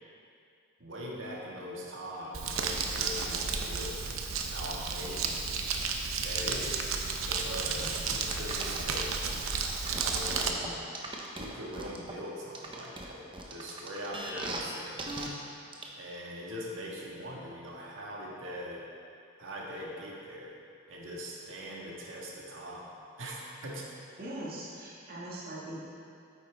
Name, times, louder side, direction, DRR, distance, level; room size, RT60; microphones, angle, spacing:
voice 1, 0.8-4.0 4.4-5.6 6.2-6.9 7.2-9.2 10.0-10.9 11.3-15.1 15.9-18.9 19.4-20.5 20.9-22.9 23.2-23.9, equal, 70° right, -3 dB, 1.6 m, -41 dB
Crumpling crinkling, 2.3-10.5, right 5 dB, 85° right, 0.7 m, -32 dB
sound 1, 8.5-9.1 9.7-12.1 12.5-14.7 15.0-15.3 15.7-15.8, right 2 dB, 25° right, 0.8 m, -38 dB
voice 2, 24.2-25.8, right 1 dB, 45° right, -6 dB, 1.9 m, -41 dB
9.2 x 8.6 x 3.5 m, 2.5 s
head